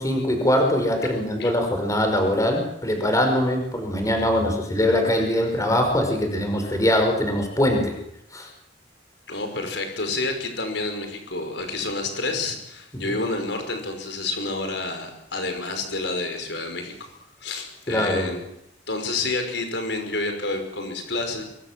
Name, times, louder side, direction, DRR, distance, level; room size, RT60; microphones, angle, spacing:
voice 1, 0.0-7.9 8.3-8.5 12.9-13.1 17.9-18.3, left 1 dB, 20° left, 4 dB, 5.3 m, -22 dB
voice 2, 9.3-17.1 17.4-18.4 18.9-21.4, left 3 dB, 70° left, 5 dB, 5.6 m, -29 dB
24.5 x 23.5 x 7.6 m, 0.77 s
head